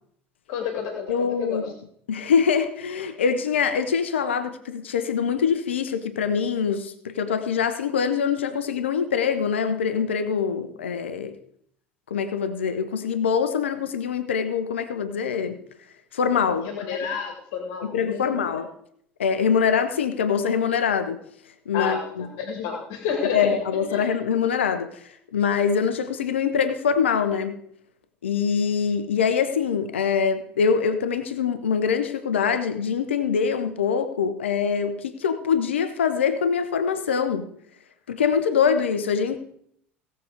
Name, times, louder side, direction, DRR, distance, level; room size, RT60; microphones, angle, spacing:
voice 1, 0.5-1.7 16.6-18.3 21.7-23.6 23.9-24.0, left 6 dB, 55° left, 2.0 m, -30 dB
voice 2, 1.1-1.6 2.1-11.3 12.1-15.6 16.1-16.7 17.9-18.7 19.2-21.2 21.7-22.3 23.2-27.6 28.2-37.5 38.1-39.4, left 6 dB, 75° left, 0.9 m, -24 dB
17.5 x 6.8 x 4.9 m
figure-of-eight pair, 70°, 6 cm